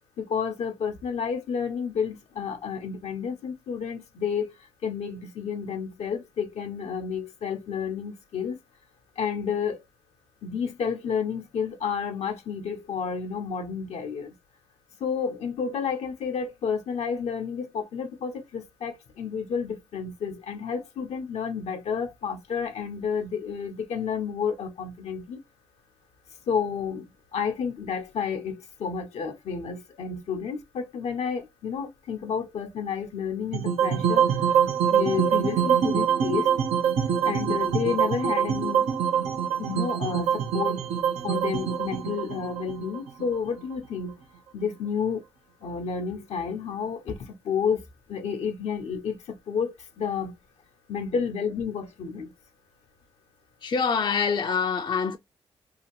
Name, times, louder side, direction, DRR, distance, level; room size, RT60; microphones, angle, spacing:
voice 1, 0.2-8.6 9.2-9.8 10.4-14.3 15.0-25.4 26.5-34.6 34.9-36.5 37.2-38.9 39.6-40.9 41.2-44.2 44.5-45.2 45.6-47.8 48.1-50.3 50.9-52.3, left 6 dB, 75° left, 0.7 m, -30 dB
sound 1, 33.5-43.7, right 8 dB, 85° right, 0.6 m, -25 dB
voice 2, 53.6-55.2, left 6 dB, 45° left, 0.5 m, -25 dB
2.8 x 2.5 x 2.9 m
supercardioid pair, 55°, 11 cm